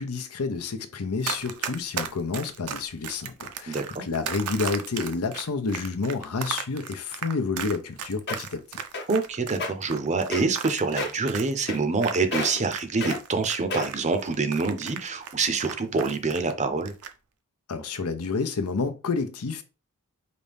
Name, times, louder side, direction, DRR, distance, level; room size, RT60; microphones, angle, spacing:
voice 1, 0.0-8.8 17.7-19.6, left 4 dB, 75° left, 0.7 m, -29 dB
Run, 1.2-12.8 13.1-16.5 16.8-17.1, right 8 dB, 80° right, 0.6 m, -35 dB
voice 2, 3.7-4.0 9.1-16.9, right 4 dB, 30° right, 0.6 m, -26 dB
sound 1, 7.8-7.9 8.3-8.6 8.9-9.2 9.5-9.7 10.3-10.7 11.0-11.2 11.7-12.0 12.3-12.7 13.0-13.2 13.7-14.1 14.7-14.8, left 2 dB, 50° left, 1.1 m, -30 dB
5.1 x 2.7 x 3.4 m
head